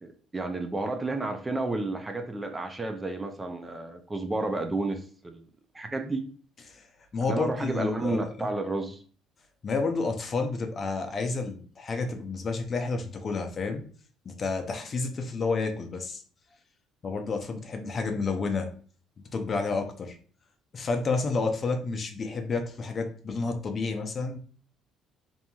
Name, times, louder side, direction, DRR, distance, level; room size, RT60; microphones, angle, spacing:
voice 1, 0.0-5.4 5.7-6.2 7.3-9.0, right 2 dB, 20° right, 6 dB, 0.4 m, -31 dB
voice 2, 7.1-8.5 9.6-13.8 14.3-16.2 17.0-18.7 19.3-20.2 20.7-24.4, left 4 dB, 40° left, 4 dB, 0.5 m, -30 dB
2.8 x 2.6 x 2.2 m, 0.43 s
cardioid pair, 95°, 0 cm